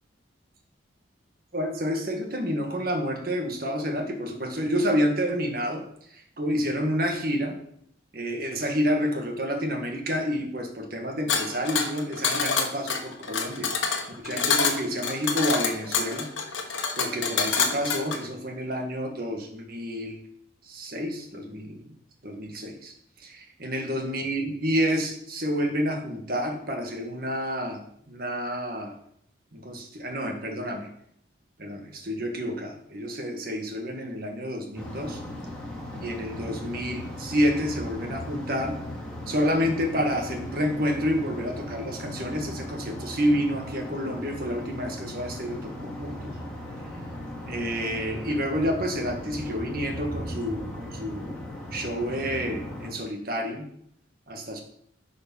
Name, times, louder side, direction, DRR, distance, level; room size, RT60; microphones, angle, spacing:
voice 1, 1.5-5.8 6.1-7.6 8.1-16.3 17.0-20.2 20.6-21.8 22.2-22.9 23.2-29.0 29.5-30.9 31.6-35.2 36.0-38.8 39.3-46.3 47.5-51.4 51.7-53.6 54.3-54.6, equal, 50° right, 3 dB, 1.6 m, -29 dB
sound 1, 11.3-18.2, left 5 dB, 75° left, 1.2 m, -26 dB
sound 2, 34.8-52.9, left 1 dB, 5° left, 2.2 m, -38 dB
10.5 x 5.1 x 5.5 m, 0.70 s
head